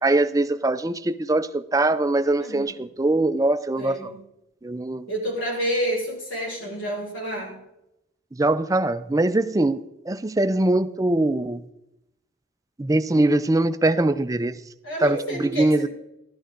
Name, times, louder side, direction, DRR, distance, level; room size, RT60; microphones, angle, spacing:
voice 1, 0.0-4.1 4.6-5.1 8.3-11.6 12.8-14.5 15.0-15.9, right 2 dB, 15° right, 12 dB, 0.4 m, -22 dB
voice 2, 2.4-2.8 3.8-4.2 5.1-7.6 14.8-15.9, right 1 dB, 80° left, -3 dB, 5.3 m, -29 dB
14.0 x 12.0 x 3.8 m, 0.88 s
head